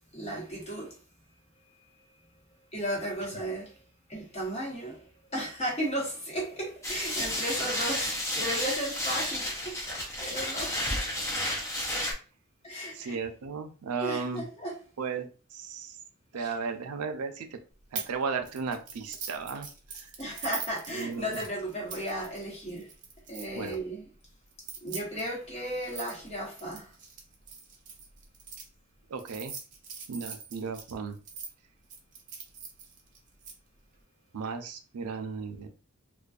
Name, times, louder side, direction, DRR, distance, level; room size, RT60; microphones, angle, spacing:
voice 1, 0.1-1.0 2.7-3.8 4.1-5.1 5.3-10.8 12.6-13.2 14.0-14.7 16.3-16.5 20.2-22.9 23.3-24.1 24.8-26.9, right 1 dB, 30° left, 0.9 m, -35 dB
sound 1, 6.8-12.1, left 1 dB, 15° left, 0.5 m, -31 dB
voice 2, 12.9-14.5 15.0-16.0 16.3-17.6 17.9-19.7 20.9-21.3 23.6-23.8 29.1-29.5 30.1-31.2 34.3-35.7, right 5 dB, 90° right, 0.4 m, -35 dB
sound 2, 17.9-18.1 18.4-23.7 24.5-28.6 29.2-31.5 31.9-33.5, right 6 dB, 35° right, 0.5 m, -42 dB
2.5 x 2.2 x 2.3 m
head